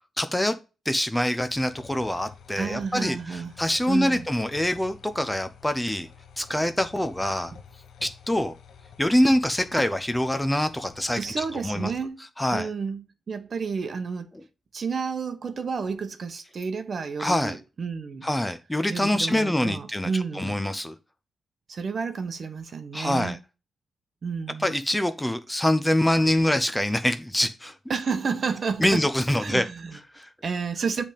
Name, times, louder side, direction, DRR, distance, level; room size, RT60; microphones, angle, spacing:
voice 1, 0.2-0.6 0.9-6.1 6.4-7.5 8.0-8.5 9.0-11.9 12.4-12.7 17.2-17.6 18.2-20.1 20.3-20.9 22.9-23.4 24.6-27.7 28.8-29.7 30.1-30.3, left 1 dB, 10° left, 0.7 m, -25 dB
sound 1, 1.4-12.1, left 7 dB, 75° left, 1.0 m, -49 dB
voice 2, 2.6-3.5 3.9-4.2 11.2-12.2 12.5-14.3 14.7-18.3 18.9-20.6 21.7-23.4 24.2-24.7 27.9-29.0 29.4-30.0 30.4-31.0, right 5 dB, 45° right, 1.0 m, -31 dB
8.0 x 3.5 x 5.1 m
cardioid pair, 120°, 0 cm